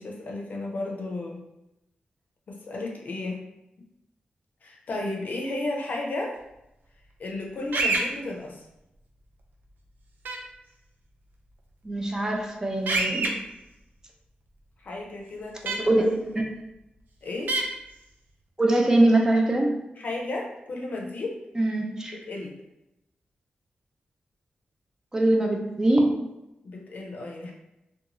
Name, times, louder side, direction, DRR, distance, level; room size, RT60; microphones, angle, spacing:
voice 1, 0.0-1.4 2.5-3.4 4.6-6.4 7.2-8.6 14.8-15.9 17.2-17.6 20.0-21.3 22.3-22.6 26.6-27.5, left 2 dB, 60° left, -1 dB, 0.5 m, -33 dB
sound 1, 7.7-8.0 10.2-10.4 12.9-13.3 15.7-15.8 17.5-17.6, right 3 dB, 85° right, 0.4 m, -25 dB
voice 2, 11.8-13.3 15.8-16.4 18.6-19.8 21.6-22.1 25.1-26.2, right 1 dB, 20° right, 1 dB, 0.4 m, -22 dB
2.6 x 2.3 x 2.9 m, 0.89 s
wide cardioid pair, 105°, 3 cm